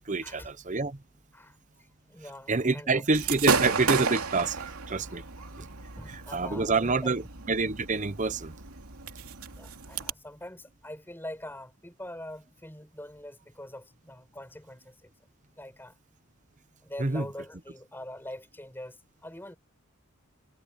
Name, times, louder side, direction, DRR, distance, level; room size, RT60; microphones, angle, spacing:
voice 1, 0.1-1.0 2.5-5.2 5.6-5.7 6.1-8.5 17.0-17.3, right 3 dB, 35° right, 0.9 m, -27 dB
voice 2, 1.3-3.0 5.8-7.1 9.5-15.1 15.6-16.0 16.8-19.6, left 1 dB, 10° left, 5.5 m, -44 dB
Gunshot gunfire / Fireworks, 3.1-10.1, right 5 dB, 85° right, 2.8 m, -32 dB
head